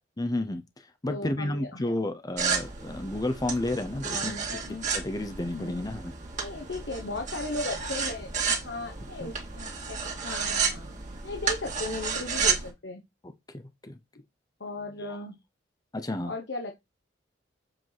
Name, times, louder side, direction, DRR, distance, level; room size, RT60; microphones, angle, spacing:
voice 1, 0.2-4.3 4.7-6.1 9.2-9.3 13.5-14.0 15.9-16.3, left 1 dB, 20° left, 0.7 m, -31 dB
voice 2, 1.1-1.8 4.1-4.9 5.5-5.8 6.3-10.0 10.2-10.9 11.2-13.0 14.6-15.4 16.3-16.7, left 2 dB, 65° left, 1.1 m, -36 dB
sound 1, 2.4-12.7, right 5 dB, 40° right, 2.0 m, -32 dB
7.7 x 4.7 x 4.0 m
head